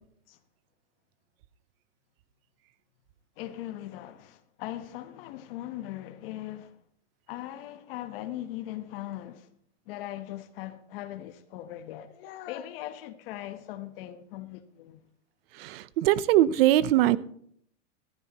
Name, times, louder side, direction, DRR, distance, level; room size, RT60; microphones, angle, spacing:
voice 1, 3.4-6.8 7.3-9.5 9.9-15.0, left 13 dB, 55° left, 1.2 m, -39 dB
voice 2, 15.6-17.2, right 14 dB, 55° right, 0.8 m, -22 dB
15.0 x 13.5 x 3.0 m
supercardioid pair, 150°, 34 cm